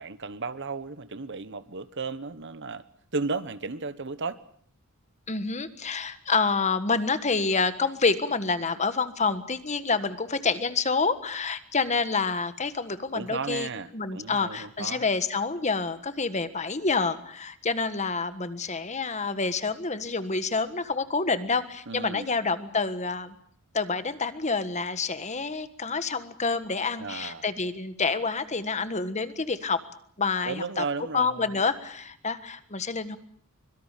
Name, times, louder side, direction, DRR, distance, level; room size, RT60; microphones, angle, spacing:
voice 1, 0.0-2.8 3.1-4.4 13.1-15.1 21.9-22.3 27.0-27.4 30.4-31.6, right 4 dB, 55° right, 14 dB, 1.2 m, -34 dB
voice 2, 5.3-23.3 23.7-29.8 30.2-30.8 31.1-33.2, left 4 dB, 30° left, 11 dB, 1.5 m, -28 dB
24.5 x 23.0 x 6.7 m, 0.63 s
head